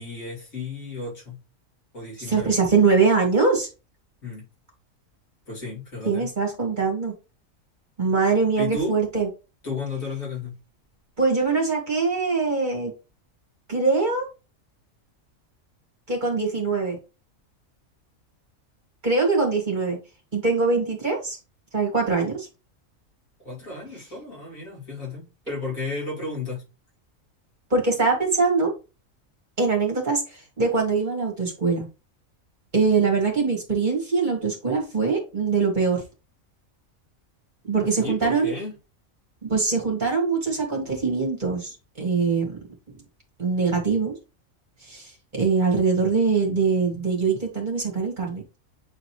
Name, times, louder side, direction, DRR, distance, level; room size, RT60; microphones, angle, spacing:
voice 1, 0.0-1.4 1.9-2.6 4.2-4.5 5.5-6.3 8.6-9.0 9.6-10.6 23.4-26.6 37.8-38.7, left 3 dB, 80° left, 3.1 m, -33 dB
voice 2, 2.3-3.7 6.0-7.1 8.0-9.3 11.2-12.9 13.7-14.3 16.1-17.0 19.0-20.0 20.3-21.4 21.7-22.5 27.7-28.7 29.6-31.8 32.7-36.0 37.7-38.5 39.4-42.6 43.4-44.1 44.8-48.6, right 4 dB, 35° right, 2.3 m, -23 dB
8.6 x 3.9 x 3.1 m
omnidirectional pair, 1.4 m